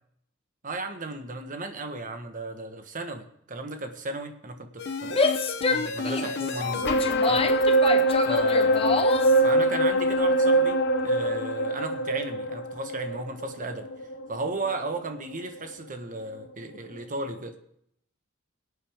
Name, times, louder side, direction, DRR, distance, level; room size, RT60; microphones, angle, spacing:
voice 1, 0.6-5.2 5.7-7.6 8.2-9.0 9.4-13.9 14.3-17.5, right 2 dB, 40° right, 6 dB, 1.3 m, -35 dB
sound 1, 4.8-15.2 15.6-15.7, right 1 dB, 55° left, 0.9 m, -24 dB
Female speech woman speaking / Yell, 5.0-9.4, left 3 dB, 30° left, 0.8 m, -27 dB
23.0 x 8.5 x 3.6 m, 0.72 s
head